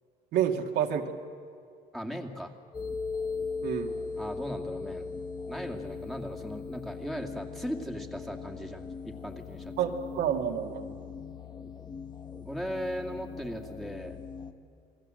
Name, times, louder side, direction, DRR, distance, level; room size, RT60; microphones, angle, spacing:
voice 1, 0.3-1.1 3.6-3.9 9.8-10.9, right 9 dB, 75° right, 2 dB, 2.2 m, -29 dB
voice 2, 1.9-2.5 4.2-5.1 5.5-9.7 12.5-14.2, equal, ahead, 1 dB, 2.4 m, -38 dB
sound 1, 2.7-14.5, left 4 dB, 25° left, 1.5 m, -39 dB
28.0 x 20.5 x 7.7 m, 2.4 s
cardioid pair, 110°, 17 cm